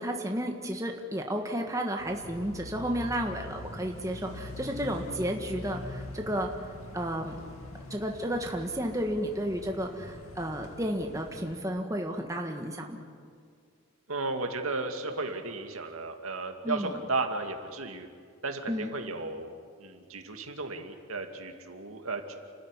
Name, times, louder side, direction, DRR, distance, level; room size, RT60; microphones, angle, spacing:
voice 1, 0.0-6.5 6.9-7.4 7.9-13.0 16.6-17.0 18.7-18.9, equal, 15° right, 2 dB, 1.6 m, -32 dB
sound 1, 2.0-11.6, left 2 dB, 85° left, 2.5 m, -44 dB
voice 2, 14.1-18.1 18.4-19.5 19.8-22.3, right 3 dB, 80° right, 4 dB, 2.3 m, -34 dB
29.5 x 13.5 x 9.8 m, 2.1 s
head